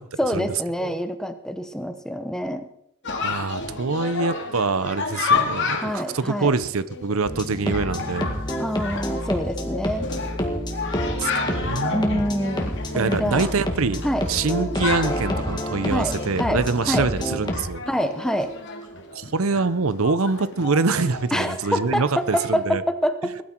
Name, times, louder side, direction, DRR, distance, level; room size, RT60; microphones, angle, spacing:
voice 1, 0.2-2.7 5.8-6.5 8.6-10.1 11.8-13.5 14.0-14.3 15.9-17.1 17.9-18.5 21.3-23.3, equal, 5° left, 8 dB, 1.1 m, -26 dB
Chatter, 3.0-22.6, left 4 dB, 55° left, 2.4 m, -31 dB
voice 2, 3.2-8.4 11.2-12.2 12.9-14.0 14.3-17.8 19.1-22.8, right 4 dB, 70° right, 15 dB, 0.7 m, -25 dB
sound 1, 7.3-17.6, equal, 20° left, 2.2 m, -29 dB
21.0 x 12.5 x 4.5 m, 0.75 s
head